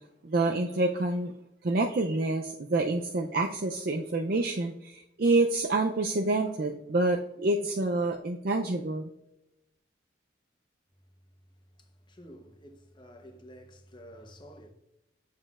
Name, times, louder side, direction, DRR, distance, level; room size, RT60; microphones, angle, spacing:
voice 1, 0.2-1.3 1.6-9.1, right 2 dB, 45° right, 0.4 m, -27 dB
voice 2, 12.1-14.7, equal, 25° left, 0.8 m, -50 dB
8.6 x 7.2 x 2.4 m
head